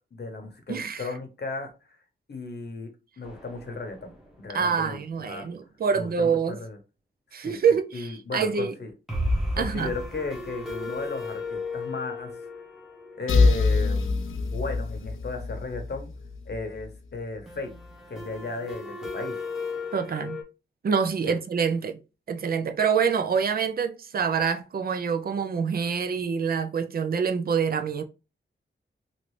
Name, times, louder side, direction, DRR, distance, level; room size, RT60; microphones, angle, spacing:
voice 1, 0.1-2.0 2.3-2.9 3.2-5.5 5.9-6.8 7.3-7.6 7.9-8.9 9.5-12.4 13.2-16.1 16.5-17.7 18.1-19.4 21.3-21.4, left 3 dB, 55° left, 0.9 m, -35 dB
voice 2, 0.7-1.1 4.5-6.6 7.3-8.7 9.6-9.9 19.9-20.4 20.8-22.0 22.3-28.0, right 6 dB, 50° right, 0.4 m, -26 dB
sound 1, 3.2-4.4 4.7-4.8 5.1-5.2 9.1-14.7 17.5-20.4, left 2 dB, ahead, 1.0 m, -35 dB
sound 2, 13.3-17.0, left 3 dB, 75° left, 0.5 m, -25 dB
3.2 x 2.6 x 3.1 m
wide cardioid pair, 110°, 21 cm